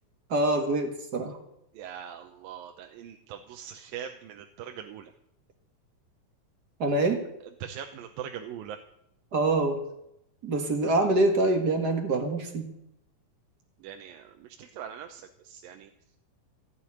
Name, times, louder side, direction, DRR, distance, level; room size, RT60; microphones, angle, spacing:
voice 1, 0.3-1.4 6.8-7.2 9.3-9.8 10.4-12.7, right 2 dB, 40° right, 4 dB, 1.7 m, -25 dB
voice 2, 1.7-5.1 7.6-8.8 13.8-15.9, right 9 dB, 90° right, 5 dB, 2.6 m, -41 dB
16.0 x 6.9 x 9.7 m, 0.80 s
omnidirectional pair, 4.0 m